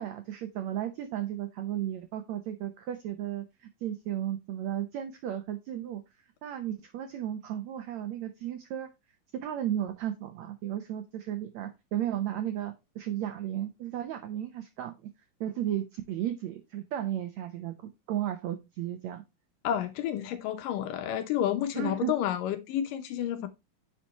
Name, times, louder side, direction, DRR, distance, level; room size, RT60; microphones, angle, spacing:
voice 1, 0.0-6.0 6.4-8.9 9.3-15.1 15.4-17.7 18.1-19.2 21.7-22.1, right 11 dB, 80° right, 1.6 m, -34 dB
voice 2, 19.6-23.5, left 10 dB, 75° left, 2.3 m, -30 dB
9.8 x 5.8 x 2.9 m
omnidirectional pair, 4.2 m